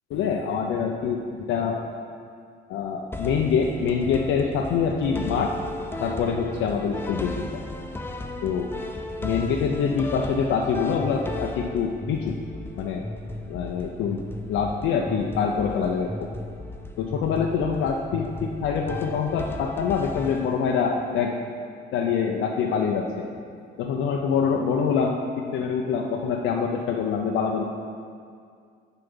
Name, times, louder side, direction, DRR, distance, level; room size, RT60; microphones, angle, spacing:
voice 1, 0.1-1.2 1.5-1.8 2.7-5.5 6.0-7.6 8.4-8.7 9.2-12.4 12.8-13.0 13.5-14.2 14.5-16.3 17.0-21.4 21.9-23.3 23.8-27.6, left 6 dB, 90° left, 1 dB, 0.5 m, -25 dB
sound 1, 3.1-20.9, left 2 dB, 10° left, 0.5 m, -35 dB
6.9 x 4.7 x 5.4 m, 2.2 s
cardioid pair, 90°, 20 cm